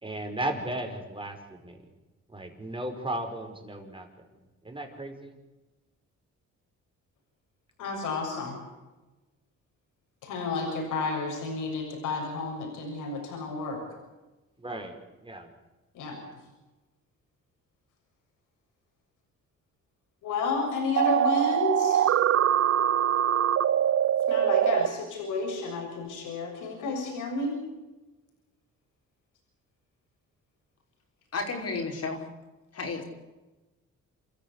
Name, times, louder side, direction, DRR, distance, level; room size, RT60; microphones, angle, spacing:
voice 1, 0.0-1.8 2.3-4.1 4.6-5.4 14.6-15.0 15.2-15.5, right 1 dB, 15° right, 4 dB, 5.4 m, -35 dB
voice 2, 7.8-8.6 10.2-13.8 15.9-16.2 20.2-22.1 24.3-27.6, left 3 dB, 85° left, 1 dB, 6.9 m, -31 dB
sound 1, 21.0-24.9, right 10 dB, 55° right, 0.8 m, -23 dB
voice 3, 31.3-32.3 32.7-33.0, left 4 dB, 55° left, 2 dB, 5.6 m, -32 dB
28.0 x 14.0 x 8.5 m, 1.1 s
cardioid pair, 90°, 30 cm